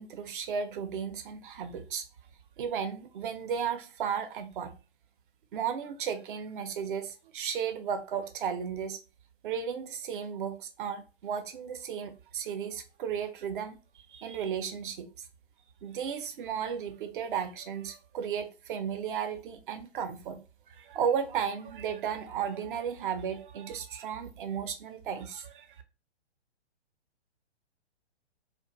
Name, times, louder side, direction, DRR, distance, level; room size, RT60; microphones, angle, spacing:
voice 1, 0.0-2.1 2.6-4.7 5.5-9.0 9.4-15.3 15.8-25.8, right 7 dB, 50° right, 0.5 m, -34 dB
2.6 x 2.1 x 2.9 m
hypercardioid pair, 145°, 34 cm